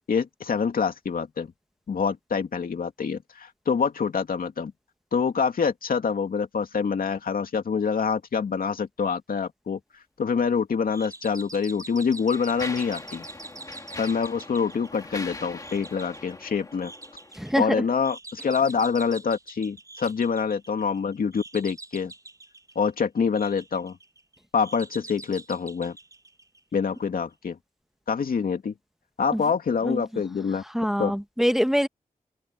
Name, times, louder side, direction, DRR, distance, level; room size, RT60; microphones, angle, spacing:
voice 1, 0.1-1.5 1.9-4.7 5.1-9.8 10.2-13.3 14.0-16.9 17.6-22.1 22.8-24.0 24.5-26.0 26.7-27.6 28.1-28.7 29.2-30.6 31.0-31.2, left 6 dB, 90° left, 2.5 m, -26 dB
Mechanisms, 10.9-11.1 11.8-17.6, left 2 dB, 25° left, 1.7 m, -41 dB
sound 1, 10.9-27.0, right 2 dB, 25° right, 5.2 m, -45 dB
voice 2, 17.4-17.8 29.3-29.4 29.8-30.0 30.7-31.9, equal, ahead, 1.1 m, -24 dB
open air
wide cardioid pair, 155°, 15 cm